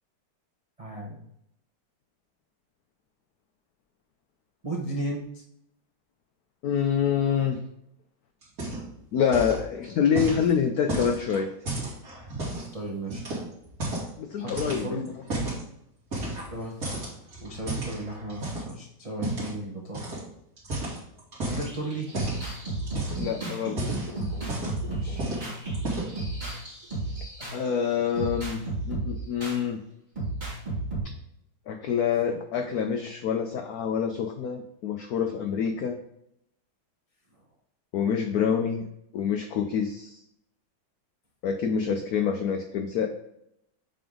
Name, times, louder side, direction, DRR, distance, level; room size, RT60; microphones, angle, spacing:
voice 1, 0.8-1.2 4.6-5.4 12.7-13.2 14.4-15.1 16.5-17.0 17.4-20.0 21.4-22.1 24.9-25.2, right 1 dB, 65° right, -2 dB, 0.3 m, -35 dB
voice 2, 6.6-7.6 9.1-11.5 14.2-15.0 23.2-23.8 27.5-28.6 28.9-29.8 31.7-36.0 37.9-38.9 39.1-40.2 41.4-43.1, left 7 dB, 90° left, 6 dB, 0.8 m, -26 dB
sound 1, 8.4-9.0 9.3-9.7 10.2-12.7 13.1-14.1 14.5-15.6 16.1-16.6 16.8-18.7 19.2-19.5 19.9-20.2 20.6-21.7 22.1-22.4 22.8-23.3 23.6-24.9 25.2-25.5 25.7-26.2, right 1 dB, 45° right, 2.5 m, -32 dB
sound 2, 21.7-27.7 28.2-29.6 30.2-31.0, right 2 dB, 25° right, 1.9 m, -33 dB
7.6 x 3.4 x 3.7 m, 0.77 s
omnidirectional pair, 2.2 m